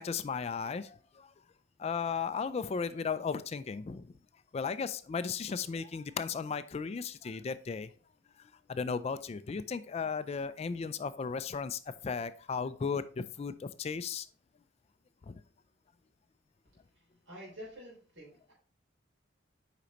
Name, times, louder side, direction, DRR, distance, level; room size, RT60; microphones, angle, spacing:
voice 1, 0.0-1.3 1.8-4.1 4.5-7.9 8.4-14.3 15.2-15.4, left 5 dB, 30° left, 13 dB, 0.3 m, -36 dB
voice 2, 16.9-18.5, equal, 85° right, -5 dB, 3.5 m, -49 dB
8.2 x 5.1 x 2.9 m, 0.42 s
head